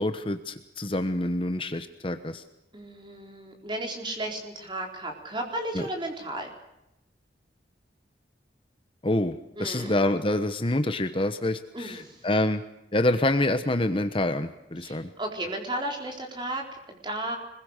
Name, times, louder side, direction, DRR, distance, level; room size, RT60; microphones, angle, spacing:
voice 1, 0.0-2.4 5.7-5.8 9.0-12.6 12.9-15.1, left 1 dB, 30° left, 9 dB, 1.1 m, -27 dB
voice 2, 2.7-6.5 9.6-10.0 11.7-12.2 14.8-17.4, right 1 dB, 25° right, 2 dB, 4.3 m, -34 dB
26.0 x 21.5 x 6.6 m, 0.88 s
head